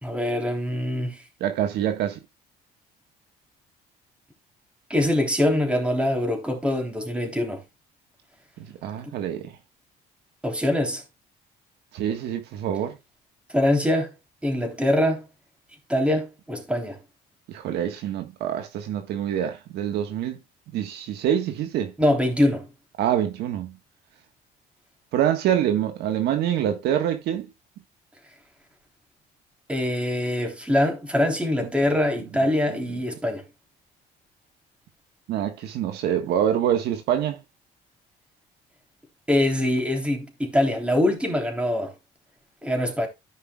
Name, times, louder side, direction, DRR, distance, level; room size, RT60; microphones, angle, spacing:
voice 1, 0.0-1.2 4.9-7.6 9.0-9.1 10.4-11.0 13.5-14.1 14.4-15.2 15.9-17.0 22.0-22.7 29.7-33.4 39.3-41.9 42.6-43.1, left 1 dB, 5° right, 3.3 m, -23 dB
voice 2, 1.4-2.2 8.8-9.5 11.9-12.9 17.5-20.4 20.7-21.9 23.0-23.8 25.1-27.5 35.3-37.4, right 10 dB, 80° right, 1.5 m, -25 dB
14.5 x 5.6 x 2.3 m
cardioid pair, 110°, 17 cm